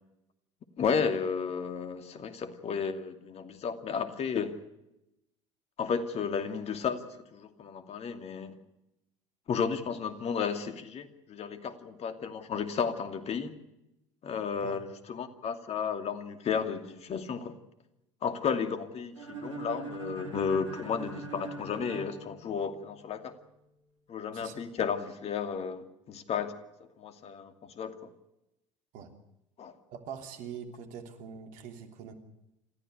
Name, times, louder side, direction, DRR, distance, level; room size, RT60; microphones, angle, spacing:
voice 1, 0.8-4.6 5.8-7.0 7.3-8.5 9.5-13.5 14.2-17.5 18.2-23.3 24.1-26.5 27.0-28.1 29.6-29.7, left 6 dB, 40° left, 9 dB, 2.6 m, -33 dB
sound 1, 19.2-23.1, right 3 dB, 90° right, 4.2 m, -42 dB
voice 2, 24.3-24.6 28.9-29.1 29.9-32.1, right 7 dB, 60° right, 6 dB, 3.2 m, -43 dB
27.0 x 15.0 x 8.2 m, 0.89 s
figure-of-eight pair, 65°, 16 cm